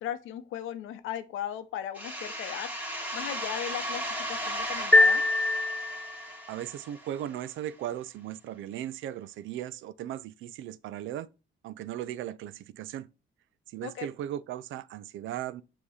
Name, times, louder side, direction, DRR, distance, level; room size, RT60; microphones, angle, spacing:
voice 1, 0.0-2.7 3.1-5.2 13.8-14.1, left 10 dB, 90° left, 0.7 m, -37 dB
sound 1, 1.9-7.4, equal, 10° right, 1.6 m, -36 dB
sound 2, 4.9-6.4, left 2 dB, 5° left, 0.3 m, -22 dB
voice 2, 6.5-11.3 11.6-13.1 13.7-15.6, right 12 dB, 75° right, 0.4 m, -37 dB
7.0 x 2.9 x 4.8 m
cardioid pair, 90°, 20 cm